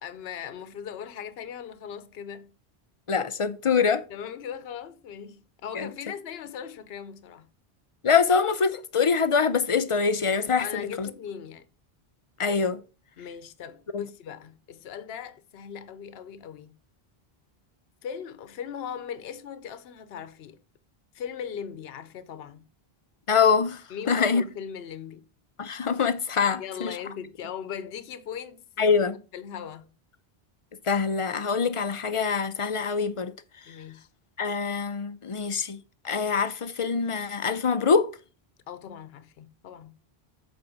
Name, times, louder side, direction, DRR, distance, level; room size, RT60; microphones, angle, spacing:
voice 1, 0.0-2.5 4.1-7.5 10.6-11.7 13.2-16.8 18.0-20.6 21.1-22.7 23.9-25.3 26.4-28.9 29.3-29.9 33.7-34.1 38.7-40.0, left 8 dB, 75° left, 0.9 m, -39 dB
voice 2, 3.1-4.0 5.7-5.9 8.0-11.1 12.4-12.8 23.3-23.8 24.1-24.4 25.6-27.0 28.8-29.2 30.8-33.3 34.4-35.8 36.0-38.1, left 5 dB, 40° left, 0.5 m, -24 dB
7.7 x 4.4 x 4.8 m
omnidirectional pair, 1.0 m